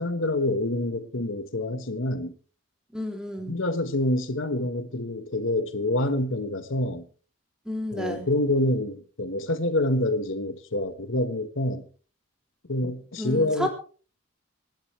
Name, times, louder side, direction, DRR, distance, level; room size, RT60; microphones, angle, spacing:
voice 1, 0.0-2.3 3.5-7.0 7.9-11.8 12.7-13.7, left 1 dB, 75° left, 1.5 m, -27 dB
voice 2, 2.9-3.6 7.6-8.3 13.2-13.7, left 1 dB, 5° right, 3.1 m, -31 dB
26.5 x 10.5 x 3.4 m
head